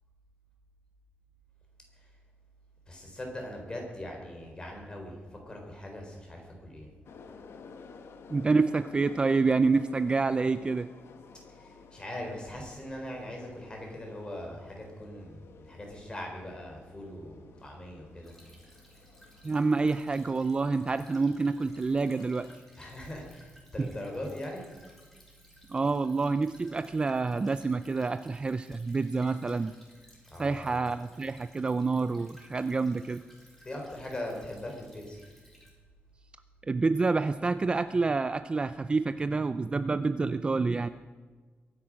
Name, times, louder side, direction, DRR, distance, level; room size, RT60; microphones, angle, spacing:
voice 1, 2.9-6.9 11.5-18.3 22.8-24.7 30.3-30.8 33.6-35.2, left 1 dB, 20° left, 1 dB, 4.0 m, -41 dB
sound 1, 7.0-22.6, left 5 dB, 85° left, 1.4 m, -53 dB
voice 2, 8.3-10.9 19.4-22.5 23.8-23.9 25.7-29.7 30.4-33.2 36.7-40.9, right 4 dB, 25° right, 12 dB, 0.4 m, -28 dB
Stream / Trickle dribble, 18.2-35.7, equal, 5° left, 3.9 m, -59 dB
22.5 x 10.0 x 6.3 m, 1.4 s
wide cardioid pair, 175°, 4 cm